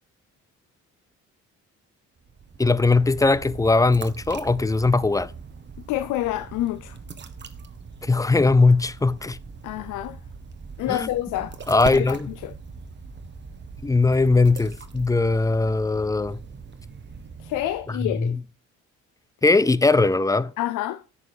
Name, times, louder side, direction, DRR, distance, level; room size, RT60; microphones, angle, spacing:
sound 1, 2.2-18.1, right 5 dB, 35° right, 1.1 m, -40 dB
voice 1, 2.6-5.3 8.0-9.4 10.9-11.1 11.7-12.3 13.8-16.4 18.0-18.4 19.4-20.5, left 3 dB, 10° left, 0.4 m, -20 dB
voice 2, 5.9-7.0 9.6-10.2 10.8-11.5 11.9-12.5 17.4-18.4 20.6-21.0, left 14 dB, 85° left, 0.5 m, -28 dB
9.3 x 6.2 x 4.9 m
cardioid pair, 90°, 30 cm